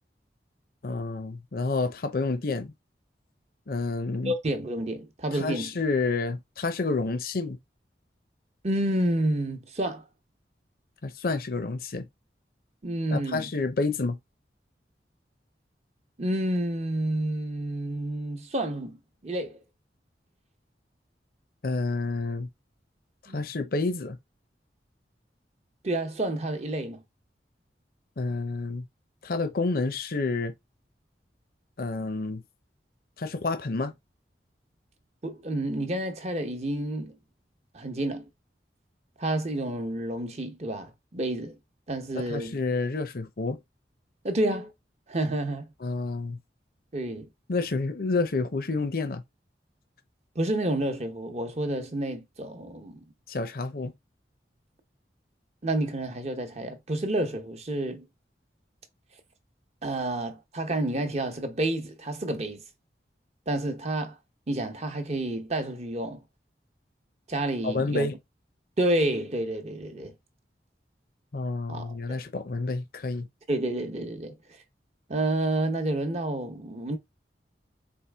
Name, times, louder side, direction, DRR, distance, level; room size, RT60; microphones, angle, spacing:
voice 1, 0.8-2.7 3.7-4.3 5.3-7.6 11.0-12.1 13.1-14.2 21.6-22.5 23.3-24.2 28.2-28.8 29.2-30.5 31.8-32.4 33.2-33.9 42.1-43.6 45.8-46.4 47.5-49.2 53.3-53.9 67.6-68.2 71.3-73.3, left 3 dB, 55° left, 0.6 m, -29 dB
voice 2, 4.2-5.7 8.6-10.0 12.8-13.5 16.2-19.0 19.2-19.6 23.3-23.4 25.8-27.0 35.2-37.2 37.7-38.2 39.2-41.6 41.9-42.6 44.2-44.7 45.1-45.7 46.9-47.3 50.3-53.0 55.6-58.1 59.8-62.6 63.5-64.2 64.5-66.2 67.3-68.1 68.8-70.1 71.7-72.2 73.5-74.4 75.1-77.0, right 1 dB, 40° right, 0.8 m, -29 dB
4.5 x 3.1 x 3.4 m
head